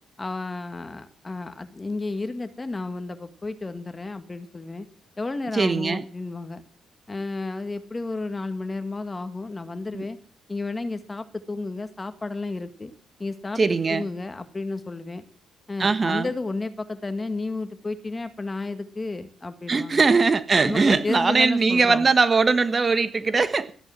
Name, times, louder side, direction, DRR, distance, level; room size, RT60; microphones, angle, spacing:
voice 1, 0.2-4.9 5.2-6.6 7.1-10.2 10.5-12.9 13.2-13.6 13.9-15.2 15.7-20.0 20.6-22.1, left 3 dB, 20° left, 1.8 m, -32 dB
voice 2, 5.5-6.0 9.9-10.0 13.6-14.0 15.8-16.3 19.7-23.7, right 4 dB, 30° right, 1.3 m, -21 dB
14.5 x 10.5 x 7.4 m
cardioid pair, 90°, 0 cm